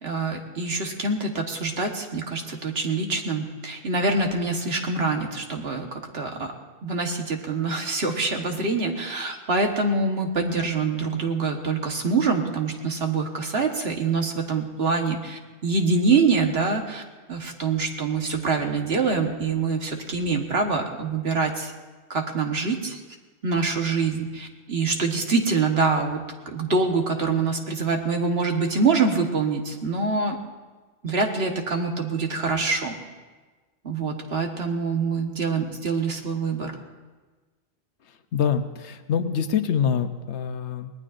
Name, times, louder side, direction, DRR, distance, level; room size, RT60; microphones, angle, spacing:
voice 1, 0.0-6.5 6.8-17.0 17.3-21.7 22.1-23.0 23.4-30.4 31.0-33.0 33.8-36.7, right 4 dB, 65° right, 3 dB, 1.6 m, -25 dB
voice 2, 38.3-40.9, left 7 dB, 90° left, 9 dB, 1.1 m, -25 dB
24.5 x 18.5 x 2.6 m, 1.3 s
omnidirectional pair, 1.1 m